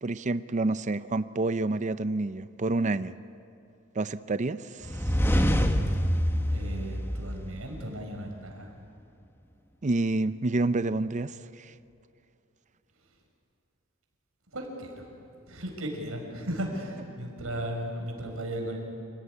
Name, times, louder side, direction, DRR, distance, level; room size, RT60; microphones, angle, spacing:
voice 1, 0.0-3.2 3.9-5.1 9.8-11.7, right 2 dB, 35° right, 13 dB, 0.6 m, -28 dB
sound 1, 4.8-7.8, equal, 10° left, 1.4 m, -26 dB
voice 2, 6.5-8.7 14.5-18.8, right 1 dB, 90° right, 2 dB, 5.8 m, -36 dB
28.5 x 18.0 x 9.9 m, 2.7 s
head